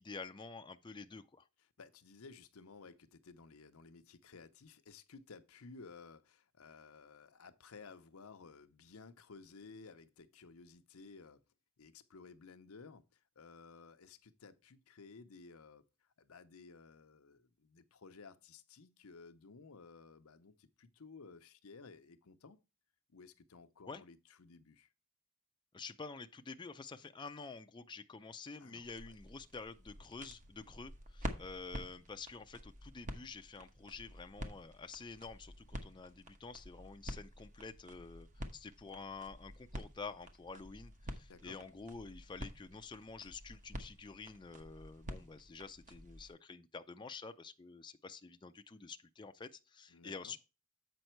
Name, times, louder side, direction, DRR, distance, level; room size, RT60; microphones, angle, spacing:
voice 1, 0.0-1.5 23.9-24.0 25.7-50.4, left 4 dB, 20° left, 0.4 m, -49 dB
voice 2, 1.8-11.4 11.8-22.6 23.1-24.9 28.6-29.1 41.3-41.6 49.9-50.4, left 4 dB, 85° left, 0.7 m, -56 dB
sound 1, 28.8-46.3, equal, 35° right, 1.0 m, -49 dB
7.9 x 5.2 x 4.4 m
head